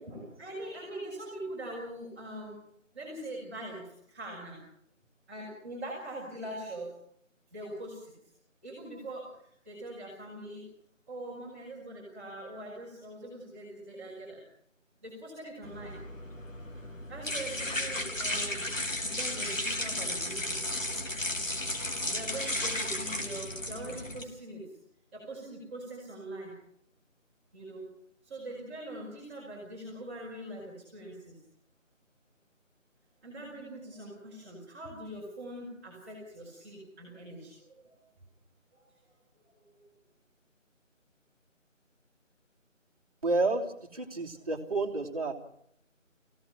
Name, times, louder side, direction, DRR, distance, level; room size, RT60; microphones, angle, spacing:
voice 1, 0.0-2.6 2.9-4.6 5.3-6.9 7.5-8.1 8.6-10.7 11.1-14.4 15.0-16.0 17.0-18.7 19.0-20.6 22.1-24.8 25.1-26.5 27.5-27.9 28.2-31.4 33.2-38.0 38.7-38.8 39.7-39.8, right 1 dB, 10° right, -8 dB, 4.9 m, -42 dB
sound 1, 15.6-24.2, left 1 dB, 75° left, 3.8 m, -34 dB
voice 2, 43.2-45.3, right 3 dB, 25° right, -2 dB, 3.1 m, -30 dB
24.5 x 17.0 x 7.9 m, 0.72 s
figure-of-eight pair, 165°, 39 cm